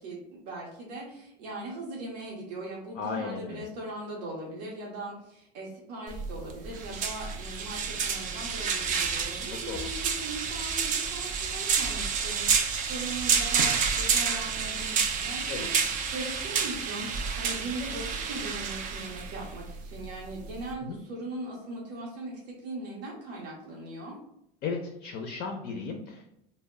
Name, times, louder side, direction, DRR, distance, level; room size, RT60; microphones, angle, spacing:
voice 1, 0.0-15.7 16.1-24.2, right 2 dB, 90° right, -3 dB, 0.7 m, -39 dB
voice 2, 2.9-3.7 9.5-9.8 15.5-15.7 20.8-21.0 24.6-26.4, left 5 dB, 45° left, 3 dB, 0.4 m, -35 dB
sound 1, 6.1-20.7, right 6 dB, 40° right, 0.4 m, -29 dB
2.0 x 2.0 x 3.4 m, 0.79 s
supercardioid pair, 110°, 21 cm